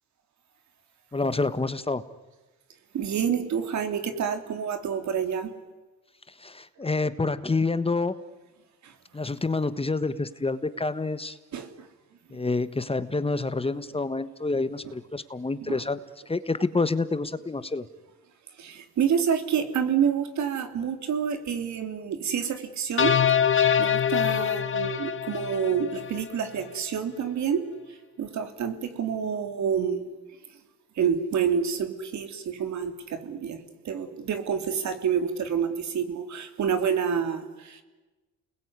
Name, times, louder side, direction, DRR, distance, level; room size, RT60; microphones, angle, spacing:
voice 1, 1.1-2.0 6.4-8.1 9.1-11.4 12.3-16.0 16.3-17.8, left 3 dB, 20° left, 13 dB, 1.4 m, -28 dB
voice 2, 2.9-5.5 8.8-8.9 11.5-11.9 14.8-15.0 15.6-15.8 18.6-23.2 23.4-23.5 23.8-27.7 28.2-30.0 31.0-33.6 33.8-37.8, right 7 dB, 65° right, 8 dB, 3.4 m, -28 dB
sound 1, 23.0-26.3, left 8 dB, 40° left, 1.6 m, -24 dB
29.5 x 21.0 x 9.6 m, 1.2 s
cardioid pair, 90°, 30 cm